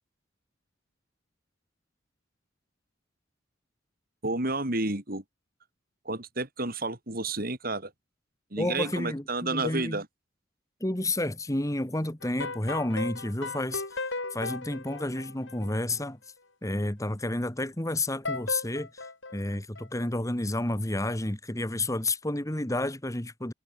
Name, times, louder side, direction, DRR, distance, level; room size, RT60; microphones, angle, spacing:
voice 1, 4.2-5.2 6.1-7.9 8.5-10.1, right 2 dB, 45° right, 3.7 m, -31 dB
voice 2, 8.6-10.0 10.8-14.0 14.3-16.2 16.6-19.1 19.3-23.5, left 1 dB, 15° left, 1.5 m, -30 dB
sound 1, 12.2-16.0 18.2-20.1, left 3 dB, 70° left, 4.8 m, -36 dB
head